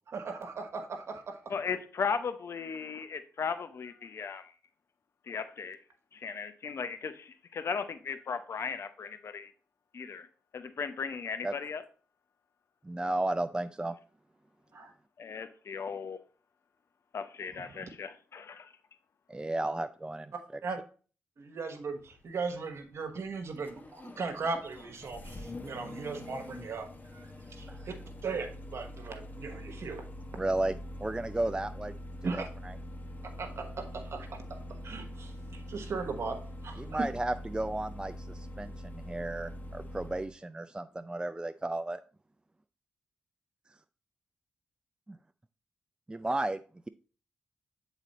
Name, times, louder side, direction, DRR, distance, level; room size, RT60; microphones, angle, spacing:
voice 1, 0.1-1.5 14.7-14.9 17.6-17.8 20.6-20.8 21.4-26.9 27.1-27.9 28.2-30.1 32.2-32.5 33.4-34.4 34.8-37.0, right 4 dB, 65° right, 1.2 m, -38 dB
voice 2, 1.5-4.5 5.3-5.8 6.1-9.5 9.9-10.3 10.5-11.8 15.2-16.2 17.1-18.7, left 6 dB, 60° left, 0.7 m, -36 dB
voice 3, 12.8-13.9 19.3-20.6 27.7-27.8 30.4-30.7 31.0-31.9 32.3-32.8 36.8-38.1 38.6-42.0 45.1-45.2 46.1-46.6, right 2 dB, 15° right, 0.4 m, -33 dB
Engine starting, 22.0-40.3, left 1 dB, 35° left, 0.9 m, -44 dB
7.3 x 4.0 x 4.1 m
supercardioid pair, 40°, 5 cm